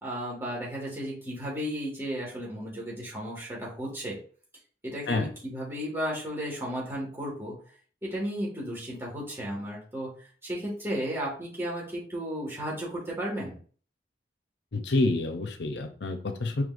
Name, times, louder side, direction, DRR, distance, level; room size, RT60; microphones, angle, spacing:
voice 1, 0.0-4.2 4.8-7.6 8.0-10.2 10.4-13.6, equal, 15° right, -5 dB, 1.9 m, -34 dB
voice 2, 14.7-16.6, left 2 dB, 70° left, 6 dB, 0.7 m, -28 dB
5.0 x 3.4 x 2.6 m, 0.43 s
head